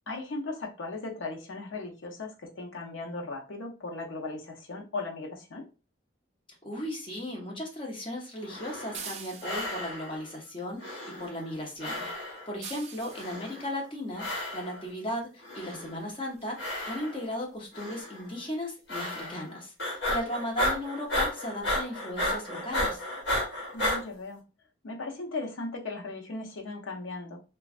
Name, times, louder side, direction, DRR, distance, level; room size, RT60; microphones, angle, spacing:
voice 1, 0.1-5.6 23.7-24.4 24.8-27.4, left 3 dB, 85° left, 2 dB, 0.7 m, -37 dB
voice 2, 6.6-23.0, left 1 dB, 25° left, 0 dB, 0.8 m, -36 dB
sound 1, 8.4-9.1 9.4-10.2 10.8-11.5 11.8-12.5 13.1-13.8 14.2-14.8 15.4-16.1 16.6-17.3 17.7-18.2 18.9-19.5 19.8-24.0, left 1 dB, 65° left, 1.3 m, -33 dB
sound 2, 8.9-9.9 12.6-13.4 14.9-15.0 15.5-15.7 16.0-16.1 16.4-16.5, right 6 dB, 35° right, 0.4 m, -43 dB
3.0 x 2.3 x 2.4 m, 0.32 s
head